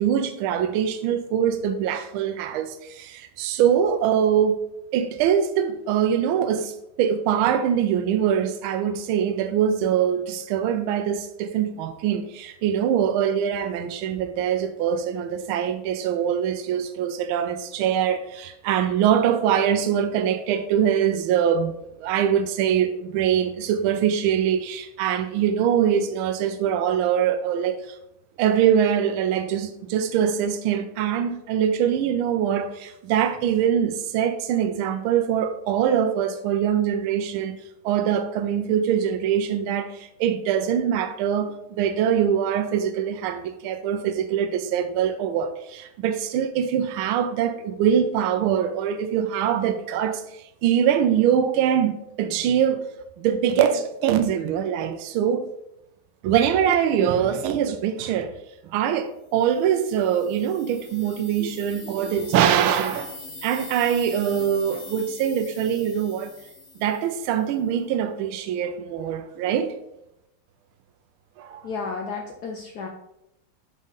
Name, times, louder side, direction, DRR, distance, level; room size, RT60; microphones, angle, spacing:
voice 1, 0.0-4.6 4.9-28.0 28.4-52.9 53.2-55.5 56.2-58.3 58.6-63.2 63.4-66.3 66.8-69.7 71.4-71.7, right 9 dB, 80° right, 1.3 m, -23 dB
sound 1, 59.5-67.4, left 3 dB, 55° left, 1.6 m, -42 dB
voice 2, 71.6-72.9, left 4 dB, 80° left, 0.9 m, -32 dB
5.0 x 3.8 x 5.4 m
omnidirectional pair, 2.4 m